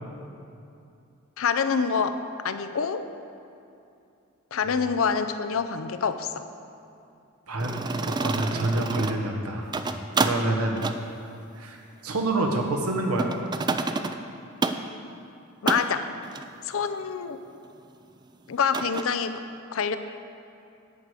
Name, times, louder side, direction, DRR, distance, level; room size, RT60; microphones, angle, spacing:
voice 1, 1.4-3.1 4.5-6.5 15.6-16.1 16.6-17.4 18.5-19.4 19.7-20.0, left 6 dB, 65° left, 10 dB, 0.5 m, -26 dB
voice 2, 7.5-9.7 10.2-10.8 11.6-13.3, right 2 dB, 85° right, 2 dB, 1.2 m, -27 dB
sound 1, 7.6-9.3 9.6-10.4 10.8-11.0 13.2-14.2 14.6-14.8 15.7-15.9 16.2-16.5 18.7-19.0, right 3 dB, 20° right, 0.3 m, -28 dB
10.5 x 4.9 x 8.1 m, 2.6 s
head